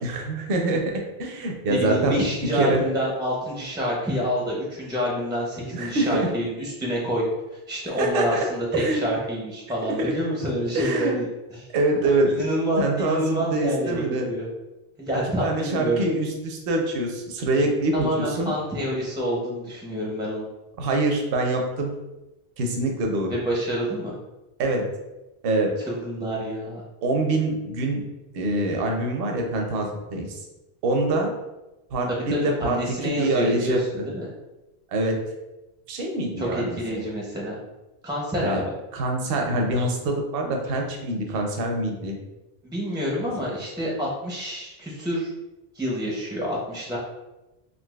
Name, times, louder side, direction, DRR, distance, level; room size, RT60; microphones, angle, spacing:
voice 1, 0.0-2.2 2.5-2.8 5.7-6.3 8.0-8.5 8.7-9.0 9.8-10.1 10.7-11.2 11.7-12.3 12.8-14.3 15.4-18.5 20.8-21.9 22.6-23.4 24.6-24.8 25.4-25.7 27.0-28.0 28.3-30.4 30.8-31.3 31.9-34.0 34.9-35.2 35.9-37.0 38.4-38.6 38.9-42.2 43.2-43.5, right 2 dB, 70° right, 2 dB, 0.8 m, -25 dB
voice 2, 1.7-7.2 7.7-11.3 12.3-14.5 15.0-16.1 17.9-20.5 23.3-24.1 25.9-26.8 32.1-34.3 36.4-37.6 38.0-38.7 42.7-45.3 45.7-47.0, equal, 5° right, -4 dB, 0.4 m, -27 dB
3.8 x 2.6 x 2.3 m, 1.0 s
omnidirectional pair, 1.0 m